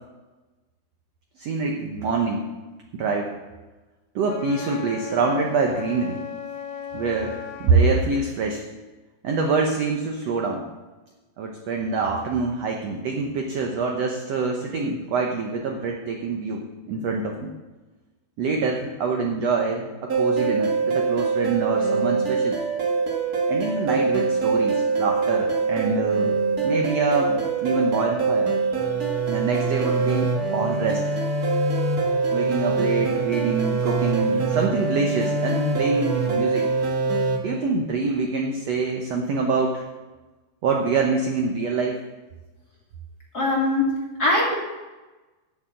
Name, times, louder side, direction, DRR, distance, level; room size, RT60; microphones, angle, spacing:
voice 1, 1.4-2.4 2.9-3.3 4.1-6.2 6.9-8.6 9.2-10.7 11.4-17.5 18.4-22.6 23.5-26.3 26.6-28.7 29.0-31.0 32.3-36.7 37.4-39.8 40.6-42.0, right 4 dB, 80° right, 1 dB, 1.4 m, -25 dB
Wind instrument woodwind instrument, 4.2-7.8, left 7 dB, 75° left, 1.7 m, -36 dB
sound 1, 20.1-37.4, right 4 dB, 45° right, 1.2 m, -24 dB
voice 2, 43.3-43.9 44.2-44.5, left 2 dB, 30° left, -4 dB, 2.0 m, -21 dB
10.5 x 6.9 x 7.6 m, 1.2 s
omnidirectional pair, 4.3 m